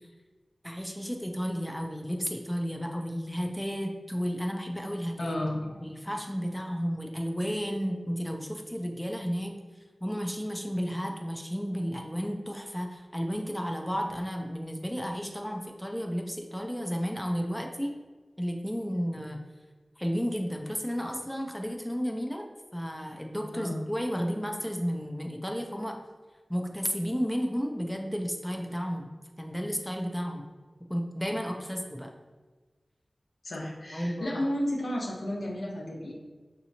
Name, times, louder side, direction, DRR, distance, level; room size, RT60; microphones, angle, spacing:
voice 1, 0.6-5.4 5.8-9.6 10.0-17.9 18.4-19.4 20.0-22.5 22.7-26.0 26.5-29.1 29.4-30.5 30.9-32.1 33.9-34.3, equal, 5° left, 2 dB, 0.5 m, -32 dB
voice 2, 5.2-5.6 23.5-23.8 33.4-36.1, left 1 dB, 85° left, -2 dB, 0.9 m, -32 dB
6.0 x 2.9 x 2.7 m, 1.3 s
wide cardioid pair, 75°, 0 cm